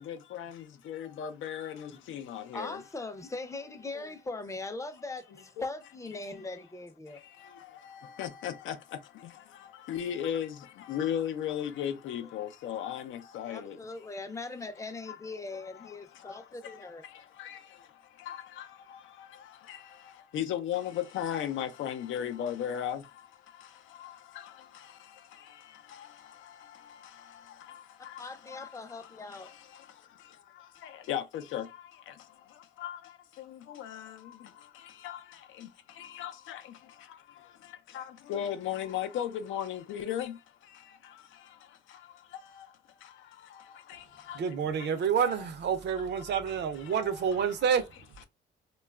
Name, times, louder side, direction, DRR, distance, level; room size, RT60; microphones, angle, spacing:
voice 1, 0.1-0.5 0.9-1.7 2.1-2.7 8.2-8.7 9.9-10.5 10.9-13.0 13.3-13.7 18.3-18.4 20.3-23.0 31.1-31.2 31.5-31.6 32.8-33.0 35.0-35.2 36.2-36.3 38.0-38.1 38.3-40.3 45.2-45.3, left 10 dB, 75° left, 0.5 m, -33 dB
voice 2, 2.5-7.2 12.2-12.3 13.5-17.0 28.2-29.5, left 3 dB, 15° left, 0.5 m, -40 dB
voice 3, 44.3-47.8, right 7 dB, 60° right, 0.5 m, -28 dB
2.9 x 2.3 x 2.3 m
cardioid pair, 90°, 20 cm